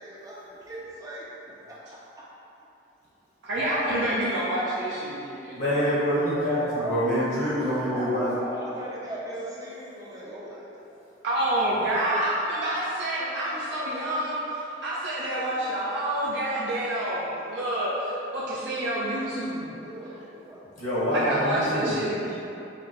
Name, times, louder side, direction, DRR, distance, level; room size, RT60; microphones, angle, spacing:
voice 1, 0.0-2.3 6.2-6.5 6.8-11.0 19.7-20.8, right 1 dB, 20° right, -6 dB, 0.4 m, -39 dB
voice 2, 3.4-5.6 11.2-19.7 21.1-22.4, right 1 dB, 70° right, -8 dB, 0.5 m, -28 dB
voice 3, 5.5-8.3 20.8-22.0, equal, 65° left, -10 dB, 1.0 m, -26 dB
5.6 x 2.1 x 2.8 m, 2.8 s
head